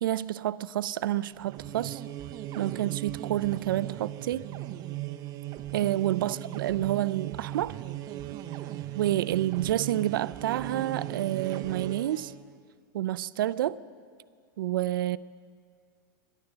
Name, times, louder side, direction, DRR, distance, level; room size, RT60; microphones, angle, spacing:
voice 1, 0.0-2.0 2.6-4.5 5.7-7.8 9.0-12.3 12.9-13.8 14.6-15.2, right 13 dB, 80° right, 18 dB, 0.4 m, -29 dB
sound 1, 1.3-12.4, right 14 dB, 35° right, 0.6 m, -38 dB
12.5 x 11.0 x 7.9 m, 2.1 s
hypercardioid pair, 130°, 11 cm